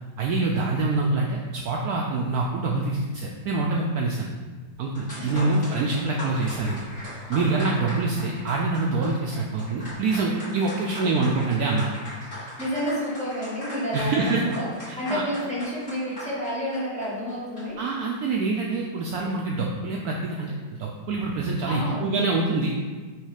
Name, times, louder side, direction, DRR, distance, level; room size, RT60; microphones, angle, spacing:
voice 1, 0.2-4.3 4.8-6.8 7.3-11.9 13.9-14.4 14.9-15.2 17.8-20.5 20.8-22.7, right 3 dB, 70° right, -1 dB, 1.0 m, -25 dB
sound 1, 4.7-4.8 5.0-17.9, equal, 30° left, 2.0 m, -39 dB
voice 2, 5.2-5.5 12.3-14.7 15.0-17.8 21.7-22.1, equal, 5° left, -8 dB, 1.5 m, -30 dB
6.4 x 3.1 x 5.0 m, 1.4 s
omnidirectional pair, 1.9 m